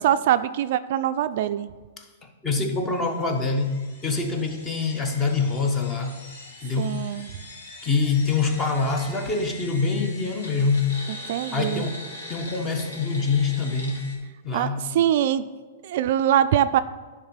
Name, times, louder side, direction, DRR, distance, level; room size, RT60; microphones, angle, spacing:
voice 1, 0.0-1.7 6.8-7.3 11.3-11.9 14.5-15.5 15.8-16.8, right 11 dB, 60° right, 12 dB, 0.3 m, -23 dB
voice 2, 2.0-3.8 4.0-6.2 6.6-7.0 7.8-10.9 11.5-14.0 14.4-14.9, left 4 dB, 20° left, 5 dB, 1.2 m, -25 dB
sound 1, 3.0-14.2, left 1 dB, 80° left, 2.6 m, -42 dB
10.5 x 3.7 x 5.7 m, 1.4 s
hypercardioid pair, 125°, 0 cm